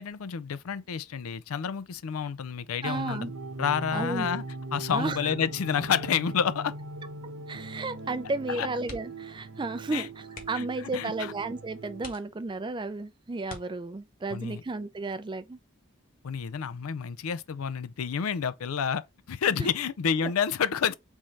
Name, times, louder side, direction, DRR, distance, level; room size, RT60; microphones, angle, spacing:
voice 1, 0.0-3.3 3.6-4.4 4.7-6.7 8.5-8.7 9.9-10.1 10.5-10.7 10.9-11.3 14.3-14.6 16.2-19.0 19.3-20.9, left 7 dB, 85° left, 0.4 m, -29 dB
voice 2, 2.8-3.3 3.9-4.3 4.9-5.3 7.5-15.6 19.6-19.7, right 3 dB, 20° right, 0.4 m, -33 dB
sound 1, 2.9-12.1, right 2 dB, 65° right, 0.8 m, -40 dB
sound 2, 8.8-9.3 9.6-9.8 10.3-10.8 11.4-11.5 12.0-12.7 13.4-14.2 15.8-16.1 16.5-16.6, left 3 dB, 40° left, 1.2 m, -46 dB
3.6 x 3.2 x 4.0 m
head